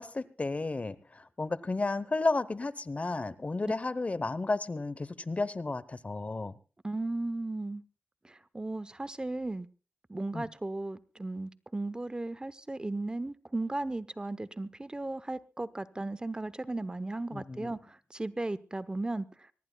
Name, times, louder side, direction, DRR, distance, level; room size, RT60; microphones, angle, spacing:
voice 1, 0.0-6.5 10.3-10.4 17.3-17.7, left 3 dB, 35° left, 17 dB, 0.8 m, -33 dB
voice 2, 6.8-7.8 8.2-9.7 10.1-19.3, right 2 dB, 20° right, 15 dB, 0.7 m, -36 dB
24.0 x 19.0 x 2.3 m, 0.34 s
wide cardioid pair, 75°, 4 cm